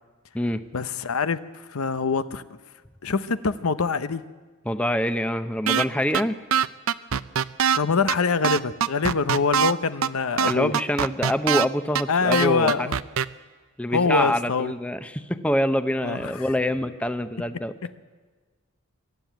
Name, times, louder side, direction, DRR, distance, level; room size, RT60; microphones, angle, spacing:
voice 1, 0.7-2.4 3.0-4.2 7.7-10.7 12.1-13.0 13.9-14.7 16.0-16.4, left 5 dB, 85° left, 13 dB, 0.8 m, -24 dB
voice 2, 4.7-6.4 10.5-12.9 13.8-17.7, left 1 dB, 5° left, 9 dB, 0.6 m, -25 dB
sound 1, 5.7-5.8 6.1-6.2 6.5-7.8 8.1-8.2 8.4-9.7 10.0-10.1 10.4-11.6 11.9-12.0 12.3-13.2, right 8 dB, 75° right, 0.6 m, -22 dB
24.0 x 12.0 x 9.2 m, 1.4 s
head